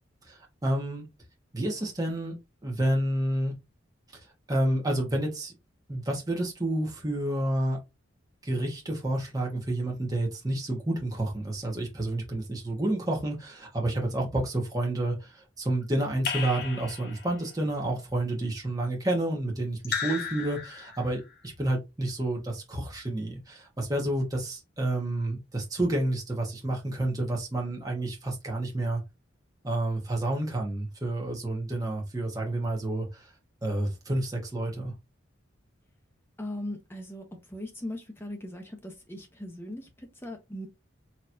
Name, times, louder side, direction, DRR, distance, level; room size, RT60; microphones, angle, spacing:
voice 1, 0.3-1.0 1.5-2.4 2.6-3.5 4.5-5.5 5.9-7.8 8.4-29.0 29.6-33.3 33.6-34.9, right 1 dB, 20° right, 1.2 m, -29 dB
Raindrop / Drip, 16.2-17.5 19.8-21.2, left 6 dB, 50° left, 0.8 m, -34 dB
voice 2, 36.4-40.7, left 1 dB, 10° left, 1.0 m, -39 dB
4.4 x 3.0 x 2.6 m
head